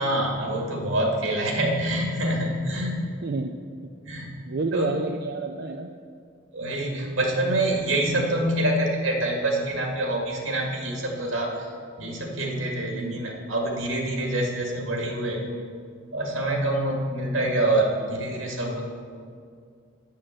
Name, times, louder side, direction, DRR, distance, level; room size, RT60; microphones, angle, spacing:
voice 1, 0.0-3.1 4.1-4.3 4.7-4.9 6.5-11.6 12.0-15.4 16.1-18.8, right 1 dB, 80° right, 0 dB, 2.2 m, -26 dB
voice 2, 3.2-3.6 4.4-5.9 10.5-10.6 12.9-13.3, right 3 dB, 50° right, 5 dB, 0.4 m, -30 dB
8.7 x 7.5 x 7.5 m, 2.3 s
head